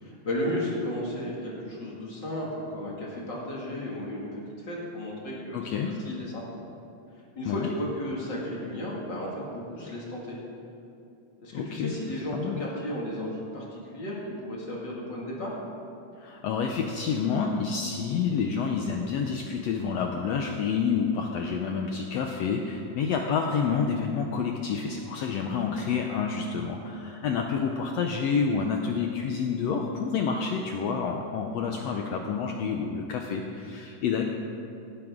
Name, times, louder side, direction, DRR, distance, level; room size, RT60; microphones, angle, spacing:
voice 1, 0.0-4.4 4.7-5.6 6.1-6.4 7.4-10.4 11.4-15.5, left 1 dB, 35° left, -4 dB, 2.5 m, -34 dB
voice 2, 5.5-6.0 7.4-7.7 11.5-11.9 12.3-12.6 16.2-34.2, left 6 dB, 80° left, 2 dB, 1.5 m, -28 dB
17.5 x 12.0 x 3.7 m, 2.7 s
omnidirectional pair, 3.8 m